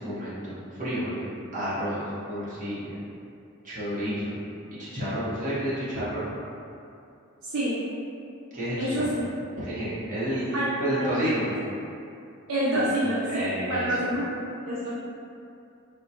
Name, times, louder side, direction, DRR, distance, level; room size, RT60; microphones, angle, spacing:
voice 1, 0.0-3.0 3.6-4.4 4.7-6.3 8.5-9.0 9.6-11.5 12.7-12.9 13.3-14.1, equal, 35° right, -10 dB, 0.9 m, -30 dB
voice 2, 7.4-7.8 8.8-9.2 10.5-10.7 11.0-11.3 12.5-14.2 14.7-14.9, right 1 dB, 70° right, -8 dB, 0.5 m, -27 dB
3.6 x 2.1 x 2.7 m, 2.6 s
head